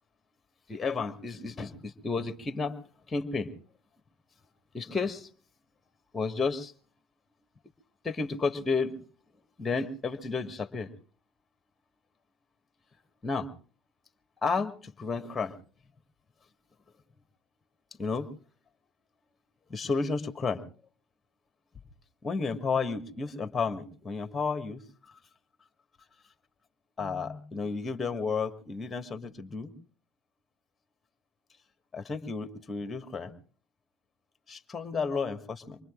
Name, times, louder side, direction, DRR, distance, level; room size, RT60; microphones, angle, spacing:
voice 1, 0.7-2.8 3.1-3.5 4.7-5.3 6.1-6.7 8.0-8.9 9.6-10.9 13.2-13.5 14.4-15.5 18.0-18.3 19.7-20.6 22.2-25.2 27.0-29.7 31.9-33.3 34.5-35.8, left 4 dB, 20° left, 8 dB, 1.5 m, -32 dB
26.0 x 23.0 x 2.4 m, 0.42 s
figure-of-eight pair, 65°, 0 cm